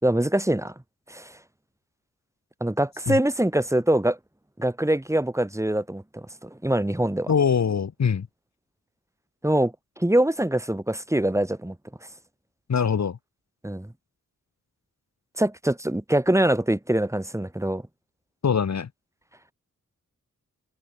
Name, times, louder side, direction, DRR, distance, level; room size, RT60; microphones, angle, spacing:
voice 1, 0.0-0.7 1.1-1.3 2.6-4.2 4.6-7.3 9.4-11.7 13.6-13.9 15.4-17.8, right 1 dB, 10° right, 3.4 m, -24 dB
voice 2, 7.3-8.3 12.7-13.2 18.4-18.9, left 6 dB, 55° left, 1.4 m, -23 dB
wide cardioid pair, 125°, 32 cm